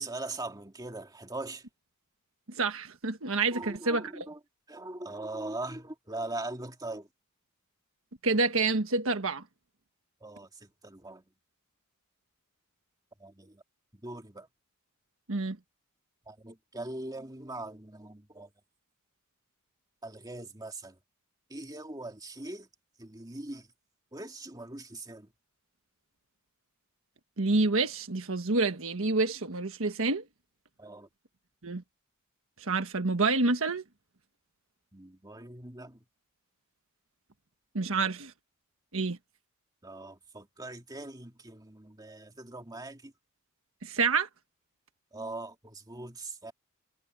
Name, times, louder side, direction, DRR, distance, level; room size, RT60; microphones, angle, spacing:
voice 1, 0.0-1.6 3.5-4.4 4.7-7.1 10.2-11.2 13.2-13.6 14.0-14.5 16.3-18.5 20.0-20.9 21.5-22.7 23.0-23.7 24.1-25.3 30.8-31.1 34.9-36.0 39.8-43.1 45.1-46.5, right 2 dB, 20° right, 2.4 m, -41 dB
voice 2, 2.5-4.3 8.2-9.4 15.3-15.6 27.4-30.2 31.6-31.8 32.6-33.8 37.7-38.3 38.9-39.2 43.8-44.3, right 3 dB, 70° right, 1.5 m, -28 dB
head